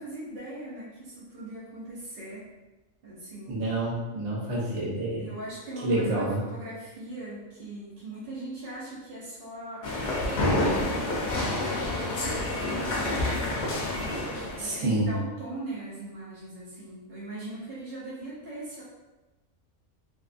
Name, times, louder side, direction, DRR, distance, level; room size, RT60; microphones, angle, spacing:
voice 1, 0.0-2.5 3.0-3.6 5.1-13.7 14.4-18.8, right 2 dB, 50° right, -9 dB, 0.7 m, -40 dB
voice 2, 3.5-5.2 5.8-6.4 14.6-15.1, right 2 dB, 70° right, -5 dB, 1.1 m, -28 dB
sound 1, 9.8-14.8, left 2 dB, 70° left, 0.4 m, -28 dB
2.6 x 2.3 x 2.4 m, 1.1 s
omnidirectional pair, 1.3 m